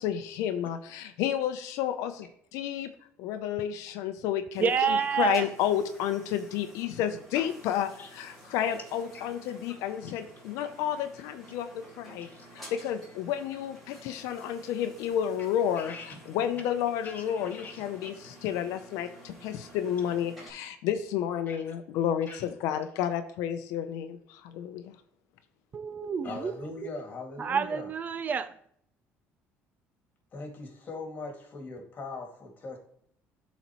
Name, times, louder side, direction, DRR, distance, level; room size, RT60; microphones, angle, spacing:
voice 1, 0.0-2.9 3.2-4.7 5.2-12.3 12.5-15.9 16.3-24.9 26.0-26.3, left 10 dB, 90° left, 0.6 m, -31 dB
sound 1, 4.5-20.5, right 1 dB, ahead, 2.4 m, -51 dB
voice 2, 4.6-5.5 25.7-26.5 26.8-26.9 27.4-28.6, right 7 dB, 35° right, 0.4 m, -28 dB
voice 3, 15.8-16.2 17.0-17.9 18.1-18.3 21.5-21.7 22.3-22.5 26.2-27.9 30.3-32.8, left 3 dB, 35° left, 2.0 m, -41 dB
12.0 x 4.1 x 3.0 m
cardioid pair, 130°, 5 cm